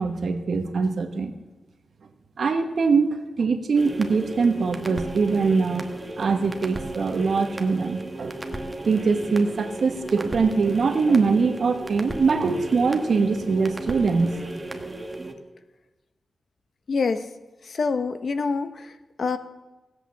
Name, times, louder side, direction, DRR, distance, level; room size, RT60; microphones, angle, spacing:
voice 1, 0.0-1.3 2.4-5.9 6.2-8.4 8.9-14.3, right 4 dB, 65° right, 7 dB, 1.3 m, -23 dB
sound 1, 3.7-15.3, right 1 dB, 20° right, 1.2 m, -35 dB
voice 2, 16.9-17.3 17.6-19.4, left 4 dB, 55° left, 10 dB, 0.8 m, -26 dB
16.5 x 8.3 x 7.1 m, 1.1 s
wide cardioid pair, 150°, 0 cm